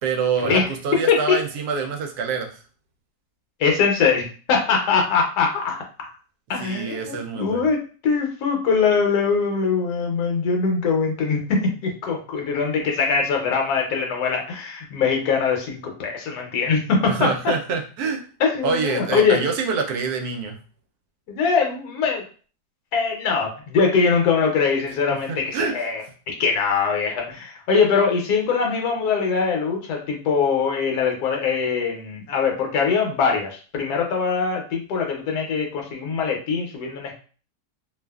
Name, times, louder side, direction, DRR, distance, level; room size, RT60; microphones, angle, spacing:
voice 1, 0.0-2.6 6.6-7.7 17.1-18.2 18.6-20.6 25.1-25.7, right 5 dB, 75° right, 3 dB, 1.0 m, -26 dB
voice 2, 3.6-5.8 6.5-17.5 18.4-19.4 21.3-22.2 22.9-37.2, left 5 dB, 75° left, 1 dB, 1.1 m, -22 dB
2.7 x 2.3 x 2.2 m, 0.39 s
omnidirectional pair, 1.7 m